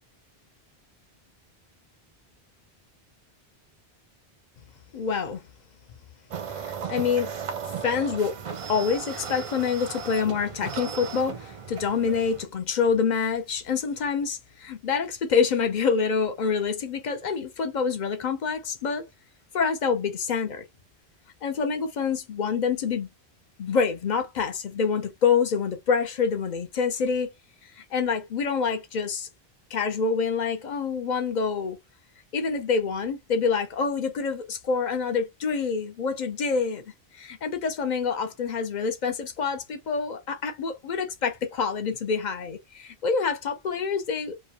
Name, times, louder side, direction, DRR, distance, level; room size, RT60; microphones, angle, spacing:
voice 1, 4.9-5.4 6.5-7.3 7.8-8.4 8.7-19.0 19.5-20.6 21.4-23.1 23.6-27.3 27.8-29.3 29.7-31.8 32.3-36.8 37.1-44.3, left 5 dB, 50° left, 0.6 m, -26 dB
sound 1, 6.3-12.4, right 6 dB, 50° right, 0.4 m, -36 dB
2.3 x 2.2 x 2.7 m
omnidirectional pair, 1.1 m